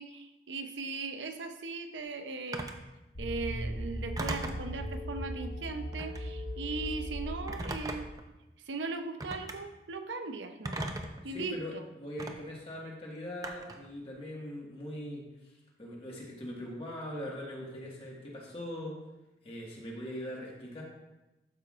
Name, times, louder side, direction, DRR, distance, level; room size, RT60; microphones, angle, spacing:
voice 1, 0.0-2.7 3.2-8.1 8.6-11.0 11.2-11.8, right 3 dB, 85° right, 7 dB, 0.7 m, -38 dB
Telephone, 2.5-2.8 4.2-4.7 5.9-6.3 7.5-8.2 9.2-9.6 10.6-11.2 12.2-12.3 13.4-13.8, right 2 dB, 20° right, 0.5 m, -37 dB
sound 1, 3.2-8.1, equal, 85° left, 1.3 m, -38 dB
voice 2, 11.2-19.0 19.4-20.8, equal, 30° left, -3 dB, 1.7 m, -41 dB
12.5 x 5.5 x 2.5 m, 1.0 s
head